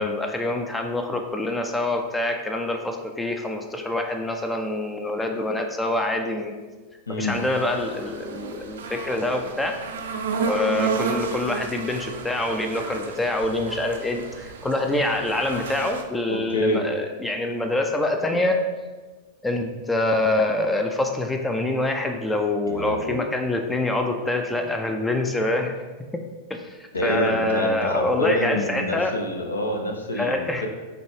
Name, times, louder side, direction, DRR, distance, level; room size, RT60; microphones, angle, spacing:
voice 1, 0.0-6.5 7.2-9.8 10.4-18.6 19.4-25.7 26.5-29.1 30.1-30.7, left 2 dB, 10° left, 4 dB, 0.3 m, -25 dB
sound 1, 7.3-16.0, right 5 dB, 60° right, 0.4 m, -32 dB
voice 2, 16.3-16.8 22.7-23.2 26.9-30.7, left 1 dB, 75° left, 3 dB, 0.6 m, -27 dB
5.8 x 2.4 x 3.2 m, 1.3 s
figure-of-eight pair, 90°, 0 cm